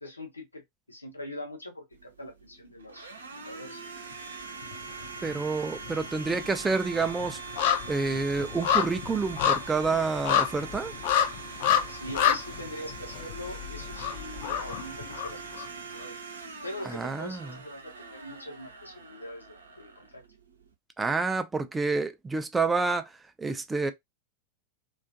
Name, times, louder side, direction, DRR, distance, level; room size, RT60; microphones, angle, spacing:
voice 1, 0.0-0.6 0.9-3.8 11.9-16.2 16.6-19.5 19.8-20.2, left 1 dB, 80° left, 0.8 m, -42 dB
Domestic sounds home sounds, 1.9-20.7, right 5 dB, 75° right, 0.6 m, -43 dB
sound 1, 4.6-5.4 5.7-15.7 16.0-16.1, left 9 dB, 50° left, 0.5 m, -29 dB
voice 2, 5.2-7.4 7.9-10.9 16.9-17.5 21.0-23.9, right 4 dB, 10° right, 0.4 m, -28 dB
2.4 x 2.3 x 2.4 m
figure-of-eight pair, 90°, 0 cm